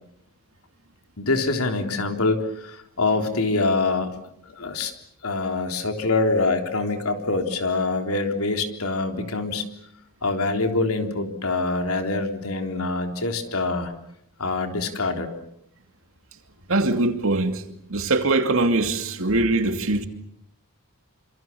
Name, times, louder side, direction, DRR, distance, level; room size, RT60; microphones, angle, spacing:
voice 1, 1.2-4.1 4.5-4.9 5.2-9.7 10.2-13.9 14.4-15.3, left 3 dB, 80° left, 3.7 m, -25 dB
voice 2, 16.7-17.6 17.9-20.0, right 2 dB, 65° right, 2.7 m, -22 dB
28.0 x 26.5 x 7.1 m
head